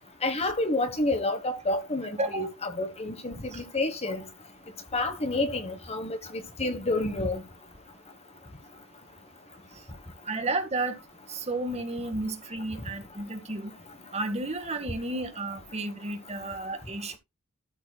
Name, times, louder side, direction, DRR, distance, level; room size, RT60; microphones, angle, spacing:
voice 1, 0.2-4.2 4.9-7.4, left 2 dB, 30° left, 1.4 m, -29 dB
voice 2, 2.2-2.5 3.5-3.6 10.3-11.0 11.3-13.8 14.1-17.2, right 2 dB, 30° right, 1.8 m, -32 dB
13.0 x 7.0 x 2.3 m
head